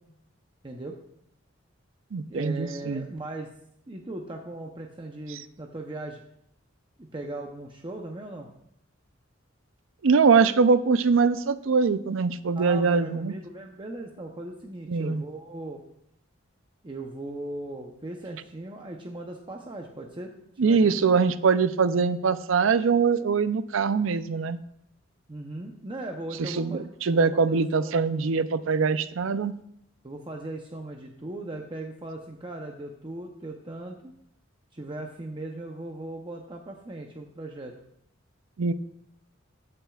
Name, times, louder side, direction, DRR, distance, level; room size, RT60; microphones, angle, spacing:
voice 1, 0.6-0.9 2.3-3.5 3.9-6.2 7.0-8.5 12.5-15.8 16.8-20.9 25.3-27.5 27.8-27.9 30.0-34.1 34.7-37.7, right 2 dB, 25° right, 2 dB, 0.7 m, -38 dB
voice 2, 2.1-3.1 5.3-5.4 10.0-13.3 14.9-15.2 20.6-24.6 26.4-29.5 38.6-38.7, right 5 dB, 80° right, 13 dB, 0.5 m, -23 dB
14.5 x 8.9 x 2.4 m, 0.73 s
head